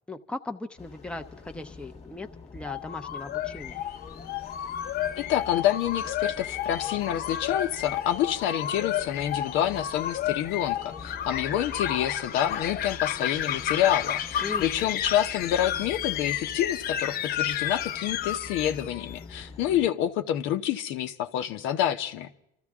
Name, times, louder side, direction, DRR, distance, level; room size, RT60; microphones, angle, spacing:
voice 1, 0.1-3.8 14.4-14.9, left 2 dB, 5° left, 6 dB, 0.8 m, -38 dB
sound 1, 0.8-19.9, left 4 dB, 30° left, 1.3 m, -46 dB
sound 2, 2.6-19.2, left 11 dB, 50° left, 0.7 m, -32 dB
voice 2, 5.2-22.3, left 11 dB, 75° left, 6 dB, 1.0 m, -28 dB
27.5 x 14.0 x 3.6 m, 0.77 s
cardioid pair, 105°, 20 cm